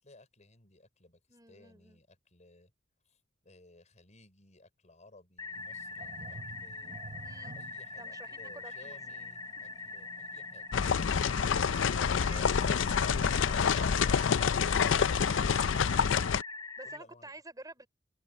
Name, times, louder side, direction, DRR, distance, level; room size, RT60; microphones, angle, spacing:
voice 1, 0.0-2.7 3.1-7.0 7.5-10.7 16.8-17.3, left 2 dB, 40° left, 5.4 m, -59 dB
voice 2, 1.3-2.0 7.2-7.6 8.0-9.0 12.0-12.6 16.8-17.9, right 2 dB, 20° right, 5.0 m, -50 dB
sound 1, 5.4-17.0, left 4 dB, 20° left, 0.8 m, -43 dB
sound 2, 5.5-11.6, right 3 dB, 40° right, 0.7 m, -52 dB
sound 3, 10.7-16.4, left 6 dB, 75° left, 0.5 m, -27 dB
open air
head